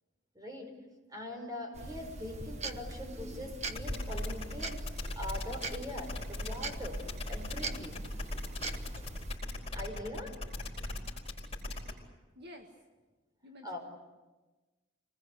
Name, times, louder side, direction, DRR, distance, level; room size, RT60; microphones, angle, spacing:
voice 1, 0.4-0.7 1.1-4.8 5.2-7.0 7.3-8.0 9.7-10.4 13.6-13.8, left 1 dB, 20° right, 3 dB, 5.2 m, -42 dB
sound 1, 1.7-9.4, right 2 dB, 35° right, 1.2 m, -41 dB
sound 2, 3.7-11.9, left 2 dB, 30° left, 4.7 m, -39 dB
voice 2, 12.4-12.7 13.4-13.8, left 1 dB, 55° right, 3 dB, 1.9 m, -50 dB
26.0 x 20.0 x 8.3 m, 1.2 s
head